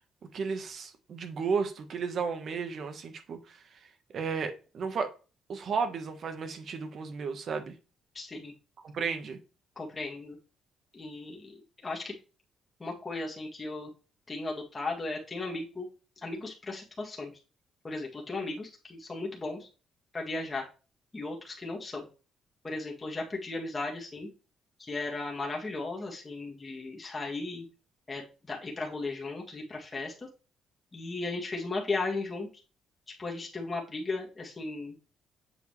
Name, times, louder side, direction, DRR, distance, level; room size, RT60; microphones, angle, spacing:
voice 1, 0.3-3.6 4.1-5.1 5.5-7.7 8.8-9.4, right 5 dB, 55° right, 1.3 m, -33 dB
voice 2, 8.1-8.5 9.8-10.4 10.9-12.1 12.8-13.9 14.3-15.9 16.2-17.3 17.8-19.7 20.1-20.7 21.1-22.1 22.6-24.3 24.8-27.7 28.1-28.2 28.5-30.3 30.9-32.5 33.2-35.0, left 3 dB, 25° left, 1.9 m, -36 dB
7.8 x 4.8 x 3.3 m
cardioid pair, 90°, 0 cm